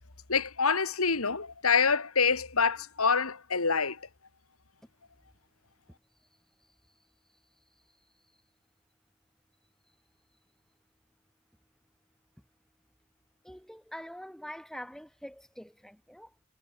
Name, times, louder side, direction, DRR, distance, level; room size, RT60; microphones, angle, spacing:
voice 1, 0.3-4.0, left 5 dB, 85° left, 2.5 m, -26 dB
voice 2, 13.4-16.4, equal, ahead, 2.2 m, -45 dB
head